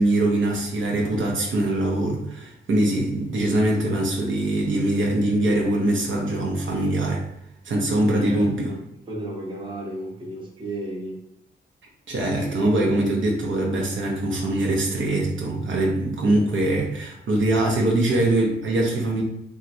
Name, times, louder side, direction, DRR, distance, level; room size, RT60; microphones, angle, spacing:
voice 1, 0.0-7.2 7.6-8.7 12.1-19.2, right 1 dB, 70° right, -1 dB, 0.8 m, -22 dB
voice 2, 8.1-8.8 9.1-11.2, right 1 dB, 25° right, -3 dB, 0.7 m, -33 dB
3.0 x 2.4 x 2.6 m, 0.79 s
wide cardioid pair, 105°, 21 cm